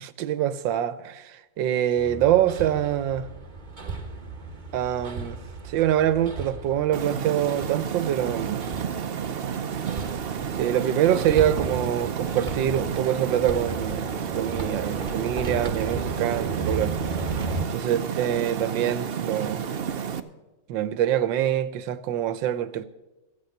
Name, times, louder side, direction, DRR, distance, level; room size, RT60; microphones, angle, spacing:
voice 1, 0.0-3.3 4.7-8.6 10.6-14.1 14.3-17.0 17.7-19.7 20.7-22.8, right 11 dB, 90° right, 1.5 m, -25 dB
Hammer, 2.0-17.6, right 3 dB, 30° right, 1.1 m, -35 dB
sound 1, 6.9-20.2, right 7 dB, 60° right, 0.6 m, -31 dB
14.5 x 8.6 x 7.8 m
omnidirectional pair, 2.0 m